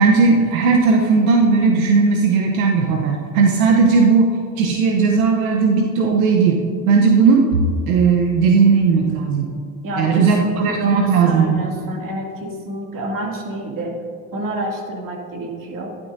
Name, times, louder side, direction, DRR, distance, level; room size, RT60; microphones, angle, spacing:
voice 1, 0.0-9.5 10.0-11.6, right 4 dB, 90° right, 2 dB, 0.9 m, -16 dB
voice 2, 9.8-13.9 14.3-16.0, right 1 dB, 50° right, -1 dB, 2.5 m, -28 dB
12.0 x 11.5 x 2.6 m, 2.2 s
hypercardioid pair, 75°, 41 cm